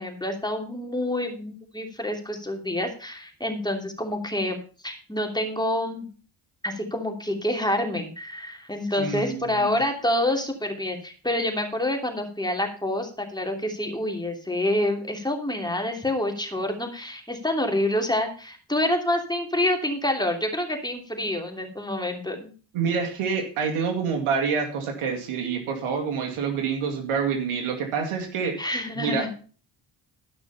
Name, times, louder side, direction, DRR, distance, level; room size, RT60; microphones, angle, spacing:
voice 1, 0.0-6.1 6.6-22.5 28.6-29.3, left 1 dB, 10° left, 3 dB, 2.8 m, -27 dB
voice 2, 9.0-9.8 22.7-29.3, right 6 dB, 90° right, 4 dB, 2.3 m, -27 dB
12.5 x 6.1 x 5.6 m, 0.39 s
cardioid pair, 65°, 49 cm